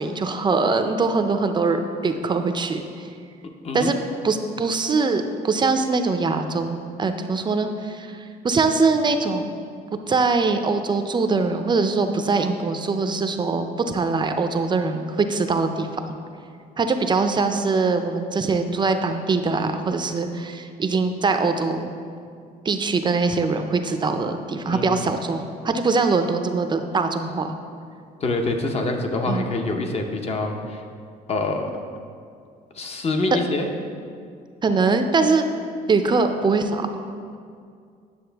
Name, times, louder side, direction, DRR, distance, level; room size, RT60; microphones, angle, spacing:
voice 1, 0.0-3.1 3.7-4.0 4.2-9.5 10.1-16.2 16.8-21.9 22.6-27.5 29.3-29.5 34.6-35.4 35.9-36.9, right 4 dB, 25° right, 7 dB, 0.5 m, -22 dB
voice 2, 24.7-25.0 28.2-30.8 31.3-31.7 32.7-33.7, left 2 dB, 35° left, 4 dB, 0.9 m, -25 dB
9.6 x 6.4 x 3.4 m, 2.3 s
cardioid pair, 110°, 17 cm